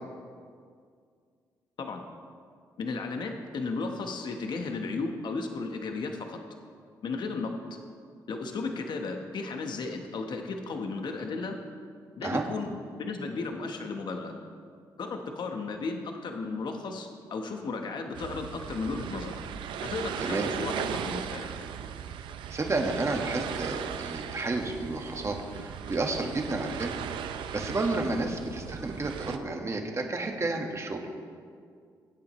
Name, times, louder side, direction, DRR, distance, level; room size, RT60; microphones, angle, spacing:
voice 1, 2.8-6.4 7.0-7.8 8.3-11.6 12.2-12.7 13.0-14.3 15.0-19.4 19.8-21.5, left 3 dB, 65° left, 4 dB, 1.2 m, -34 dB
sound 1, 18.1-29.4, right 8 dB, 85° right, 0.6 m, -37 dB
voice 2, 22.5-26.9 27.5-31.1, right 2 dB, 35° right, 2 dB, 1.6 m, -31 dB
21.0 x 8.5 x 3.2 m, 2.1 s
cardioid pair, 65°, 8 cm